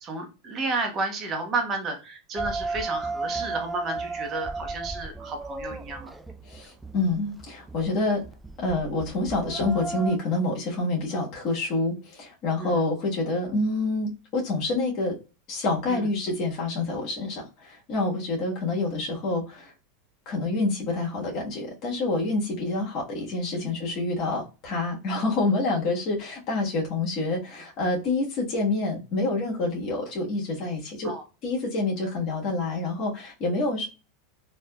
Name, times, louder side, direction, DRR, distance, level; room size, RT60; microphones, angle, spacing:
voice 1, 0.0-6.1 12.6-12.8 15.9-16.1 23.6-23.7 31.0-31.2, right 3 dB, 35° right, 5 dB, 1.0 m, -32 dB
sound 1, 2.4-10.2, right 3 dB, 10° right, 0.4 m, -34 dB
voice 2, 6.5-8.2 8.6-15.2 15.5-19.7 20.2-31.1 31.4-33.9, left 2 dB, 55° left, -2 dB, 1.2 m, -27 dB
3.3 x 2.7 x 2.2 m, 0.31 s
hypercardioid pair, 105°, 0 cm